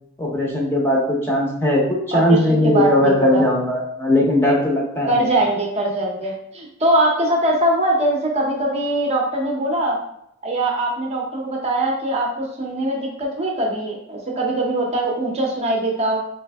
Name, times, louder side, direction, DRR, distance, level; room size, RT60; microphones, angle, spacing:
voice 1, 0.2-5.3, left 1 dB, 10° left, -3 dB, 0.8 m, -19 dB
voice 2, 2.1-3.4 5.1-10.0 10.4-16.2, right 1 dB, 30° right, -1 dB, 0.7 m, -22 dB
3.4 x 3.2 x 3.4 m, 0.75 s
head